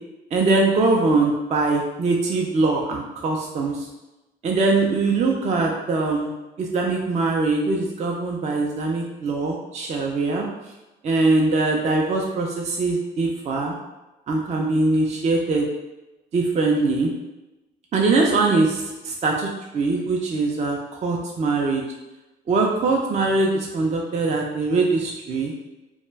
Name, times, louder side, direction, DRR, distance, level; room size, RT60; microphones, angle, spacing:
voice 1, 0.3-3.9 4.4-6.3 6.6-10.5 11.0-13.8 14.3-15.7 16.3-17.1 17.9-21.8 22.5-25.5, right 3 dB, 35° right, 0 dB, 0.4 m, -22 dB
2.2 x 2.1 x 3.1 m, 1.0 s
cardioid pair, 90°, 20 cm